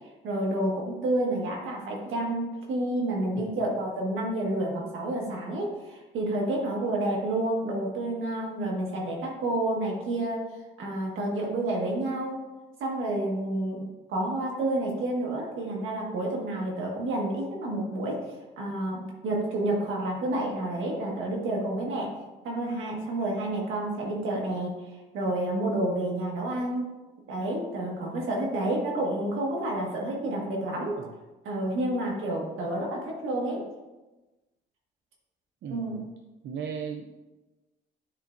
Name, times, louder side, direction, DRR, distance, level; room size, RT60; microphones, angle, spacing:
voice 1, 0.2-10.4 10.8-12.4 12.8-13.8 14.1-18.2 18.6-22.1 22.4-24.7 25.1-26.8 27.3-30.9 31.4-33.6 35.7-36.0, right 1 dB, 80° right, -1 dB, 1.6 m, -29 dB
voice 2, 3.3-3.7 31.0-31.1 35.6-36.1 36.4-37.1, right 6 dB, 65° right, 4 dB, 0.5 m, -37 dB
10.5 x 3.5 x 2.6 m, 1.1 s
cardioid pair, 90°, 20 cm